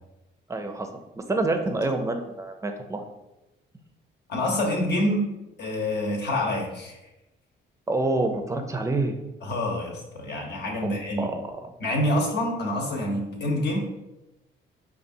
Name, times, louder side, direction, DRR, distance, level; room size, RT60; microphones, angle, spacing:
voice 1, 0.5-0.9 1.2-3.0 7.9-9.1 10.8-10.9 11.2-11.7, right 2 dB, 15° right, 6 dB, 0.5 m, -27 dB
voice 2, 4.3-5.3 5.6-7.0 9.4-11.3 11.8-13.8, left 1 dB, 55° left, -1 dB, 1.0 m, -26 dB
5.1 x 2.4 x 2.7 m, 0.99 s
cardioid pair, 90°, 20 cm